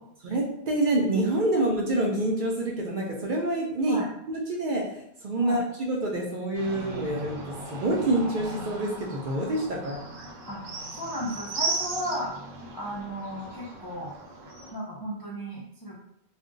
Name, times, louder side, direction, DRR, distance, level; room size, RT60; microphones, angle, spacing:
voice 1, 0.2-4.0 4.3-7.3 7.7-10.0, right 1 dB, 55° right, -1 dB, 0.6 m, -27 dB
sound 1, 6.5-14.7, right 2 dB, 80° right, 0.9 m, -37 dB
voice 2, 10.9-12.3 12.7-14.1 14.7-16.0, equal, 40° left, -5 dB, 0.3 m, -34 dB
2.4 x 2.1 x 3.7 m, 0.75 s
omnidirectional pair, 1.1 m